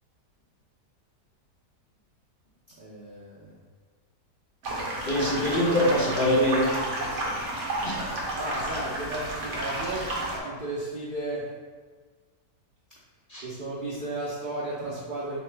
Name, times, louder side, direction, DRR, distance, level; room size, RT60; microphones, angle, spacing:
voice 1, 2.7-3.5 8.3-10.1 10.4-11.5 13.4-15.4, right 2 dB, 75° right, -7 dB, 0.4 m, -34 dB
sound 1, 4.6-10.4, right 1 dB, 55° right, 0.9 m, -31 dB
voice 2, 5.1-6.7 7.8-8.1 13.3-13.4, equal, 40° left, -8 dB, 0.8 m, -24 dB
3.7 x 2.9 x 3.3 m, 1.4 s
omnidirectional pair, 1.8 m